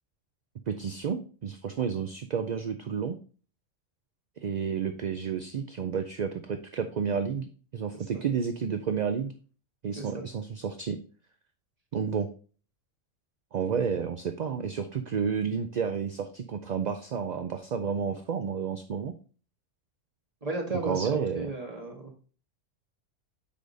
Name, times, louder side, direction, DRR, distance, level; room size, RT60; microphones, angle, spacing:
voice 1, 0.7-3.2 4.4-9.3 9.8-11.0 11.9-12.3 13.5-19.1 20.8-21.5, right 6 dB, 50° right, 8 dB, 0.5 m, -31 dB
voice 2, 10.0-10.3 20.4-21.1 21.4-22.1, right 2 dB, 30° right, 0 dB, 1.8 m, -34 dB
6.9 x 4.9 x 3.9 m, 0.39 s
omnidirectional pair, 1.3 m